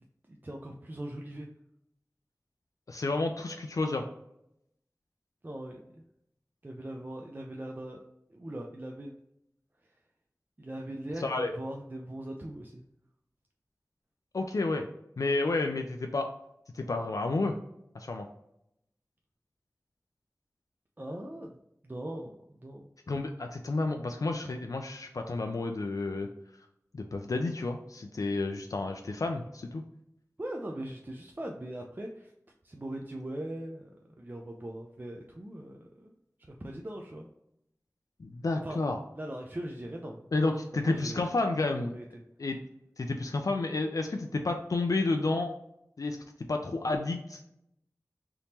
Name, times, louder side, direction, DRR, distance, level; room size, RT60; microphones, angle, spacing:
voice 1, 0.3-1.5 5.4-6.0 6.6-8.0 8.3-9.1 10.6-12.8 21.0-22.9 30.4-32.3 32.6-33.9 34.2-36.1 36.5-37.3 38.6-38.8 39.2-40.3 40.9-41.2 41.7-42.2, right 1 dB, 30° right, 1 dB, 0.4 m, -40 dB
voice 2, 2.9-4.0 11.2-11.5 14.3-14.9 15.2-16.3 16.7-17.5 17.9-18.3 23.1-26.3 26.9-29.8 38.2-39.0 40.3-41.9 42.4-42.6 43.0-45.5 46.0-46.2 46.5-47.4, left 3 dB, 70° left, 4 dB, 0.3 m, -30 dB
3.5 x 2.9 x 2.8 m, 0.78 s
wide cardioid pair, 55°, 6 cm